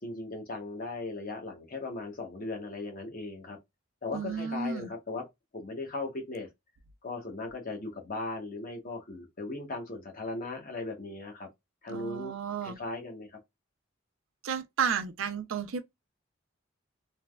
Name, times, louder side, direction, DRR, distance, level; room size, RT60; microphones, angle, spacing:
voice 1, 0.0-3.6 4.0-5.3 5.5-6.5 7.0-11.5 11.8-12.3 12.6-13.4, left 2 dB, 45° left, 0.9 m, -38 dB
voice 2, 4.1-4.9 11.9-12.8 14.4-15.8, right 6 dB, 80° right, 0.4 m, -32 dB
3.2 x 2.1 x 2.3 m
head